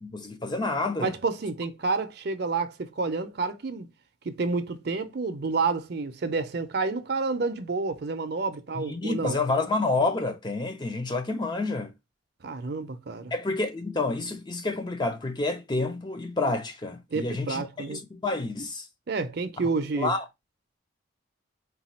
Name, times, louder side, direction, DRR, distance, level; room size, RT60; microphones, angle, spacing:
voice 1, 0.0-1.1 8.7-11.9 13.3-18.9 20.0-20.2, left 3 dB, 20° left, 0.4 m, -29 dB
voice 2, 1.0-3.9 4.2-9.4 12.4-13.3 17.1-18.0 19.1-20.1, right 4 dB, 50° right, 0.5 m, -29 dB
4.0 x 2.3 x 4.2 m
head